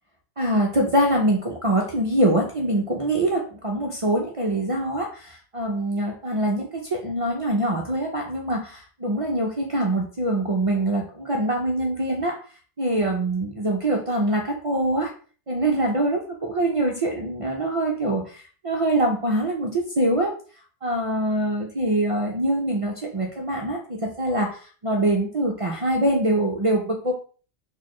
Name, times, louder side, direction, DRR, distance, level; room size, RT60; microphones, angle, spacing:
voice 1, 0.4-12.4 12.8-15.1 15.5-20.4 20.8-27.1, right 1 dB, 55° right, 0 dB, 0.3 m, -24 dB
4.1 x 2.4 x 3.0 m, 0.40 s
omnidirectional pair, 1.3 m